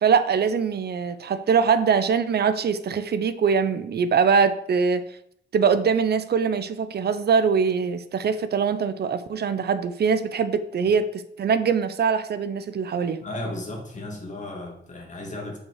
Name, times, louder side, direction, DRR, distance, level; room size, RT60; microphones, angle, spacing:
voice 1, 0.0-5.0 5.5-13.2, right 6 dB, 55° right, 12 dB, 0.6 m, -22 dB
voice 2, 13.2-15.6, left 1 dB, 35° left, 0 dB, 2.2 m, -34 dB
7.1 x 5.4 x 4.8 m, 0.72 s
wide cardioid pair, 130°, 20 cm